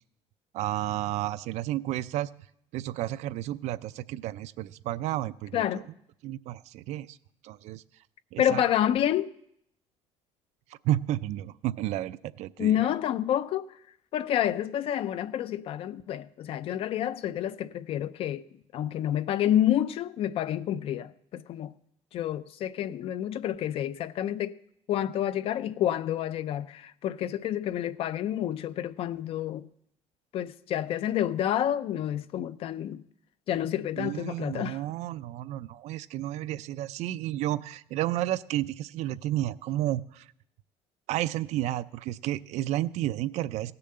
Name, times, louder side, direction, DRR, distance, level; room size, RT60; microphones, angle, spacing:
voice 1, 0.5-2.3 2.7-5.8 6.2-7.2 7.4-7.8 8.3-8.6 10.8-12.9 34.0-40.3 41.1-43.7, right 14 dB, 70° right, 0.5 m, -31 dB
voice 2, 5.5-5.8 8.4-9.3 12.6-13.8 14.1-18.4 18.7-21.7 22.1-24.6 24.9-29.7 30.3-33.0 33.5-34.8, left 11 dB, 50° left, 0.5 m, -29 dB
17.0 x 6.9 x 7.7 m
cardioid pair, 165°, 12 cm